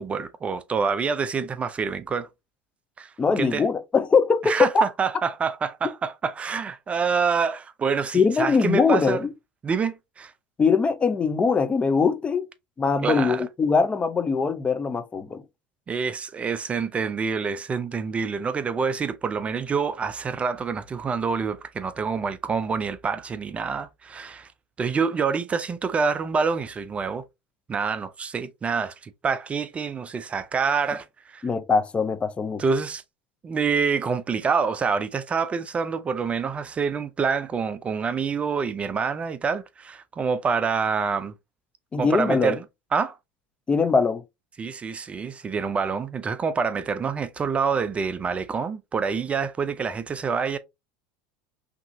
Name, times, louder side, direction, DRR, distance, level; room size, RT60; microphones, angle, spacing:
voice 1, 0.0-2.3 3.0-3.6 4.4-9.2 9.6-10.3 13.0-13.4 15.9-24.5 24.8-27.2 27.7-31.4 32.6-33.0 33.4-41.3 42.0-42.6 42.9-43.2 44.6-50.6, right 5 dB, 25° right, 0.4 m, -27 dB
voice 2, 3.2-4.9 8.1-9.3 10.6-12.5 12.8-15.4 31.4-32.6 41.9-42.6 43.7-44.2, left 5 dB, 20° left, 0.7 m, -22 dB
5.9 x 2.8 x 2.7 m
hypercardioid pair, 95°, 5 cm